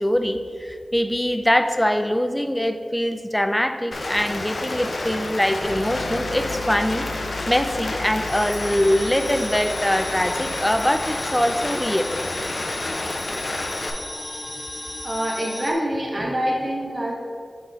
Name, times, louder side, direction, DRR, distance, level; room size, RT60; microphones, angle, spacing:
voice 1, 0.0-12.1, equal, 10° left, 7 dB, 0.4 m, -23 dB
Rain, 3.9-13.9, left 2 dB, 65° left, 0.5 m, -30 dB
sound 1, 5.6-12.4, left 3 dB, 70° right, 0.7 m, -39 dB
sound 2, 8.3-15.7, left 1 dB, 40° left, 0.8 m, -35 dB
voice 2, 15.0-17.1, equal, 35° right, -3 dB, 1.4 m, -25 dB
7.2 x 3.9 x 3.6 m, 2.1 s
wide cardioid pair, 65°, 0 cm